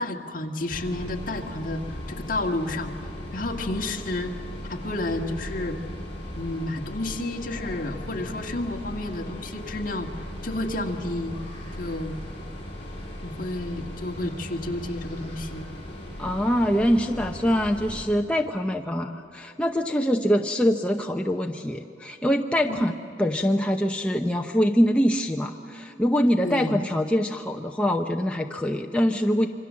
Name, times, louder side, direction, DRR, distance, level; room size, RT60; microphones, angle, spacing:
voice 1, 0.0-2.9 3.3-4.4 4.7-5.8 6.4-11.4 11.8-12.2 13.2-15.7 22.7-22.8 26.4-26.8, left 2 dB, 45° left, 3 dB, 1.7 m, -31 dB
sound 1, 0.7-18.0, left 1 dB, 30° left, 6.5 m, -38 dB
voice 2, 16.2-22.9 23.2-29.5, equal, 5° left, 2 dB, 0.7 m, -24 dB
26.5 x 24.5 x 7.4 m, 2.8 s
head